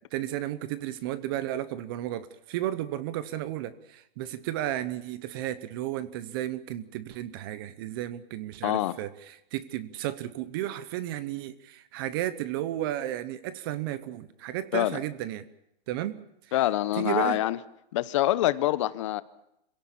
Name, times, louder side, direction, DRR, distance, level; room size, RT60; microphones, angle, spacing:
voice 1, 0.1-15.4 15.9-16.2 17.0-17.4, right 13 dB, 25° right, 0.8 m, -33 dB
voice 2, 8.6-9.0 14.7-15.0 16.5-17.6 17.9-19.2, left 15 dB, 30° left, 0.8 m, -25 dB
26.0 x 17.0 x 8.6 m
hypercardioid pair, 165°, 30 cm